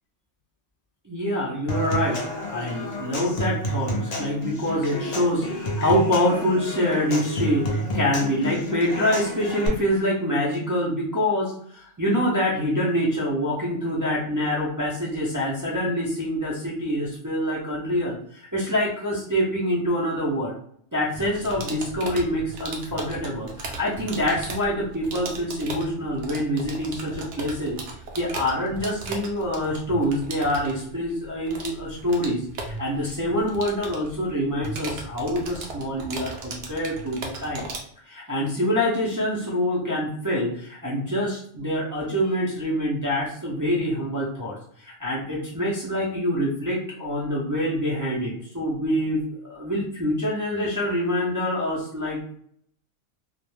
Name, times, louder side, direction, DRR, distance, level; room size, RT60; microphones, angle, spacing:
voice 1, 1.0-2.2 2.5-20.5 20.9-27.8 28.1-37.7 38.0-52.2, equal, 30° right, -6 dB, 0.3 m, -26 dB
Human voice / Acoustic guitar / Percussion, 1.7-9.7, equal, 50° left, 0.5 m, -30 dB
sound 1, 21.1-37.8, right 3 dB, 70° right, 0.9 m, -37 dB
2.4 x 2.1 x 3.1 m, 0.64 s
omnidirectional pair, 1.3 m